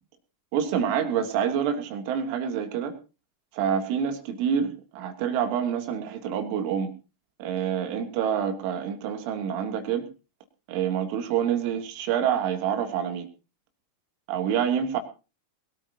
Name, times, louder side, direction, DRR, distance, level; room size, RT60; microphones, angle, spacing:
voice 1, 0.5-2.9 3.5-6.9 7.4-10.1 10.7-13.3 14.3-15.0, right 8 dB, 45° right, 7 dB, 2.8 m, -27 dB
22.5 x 13.5 x 2.9 m, 0.32 s
figure-of-eight pair, 90°, 0 cm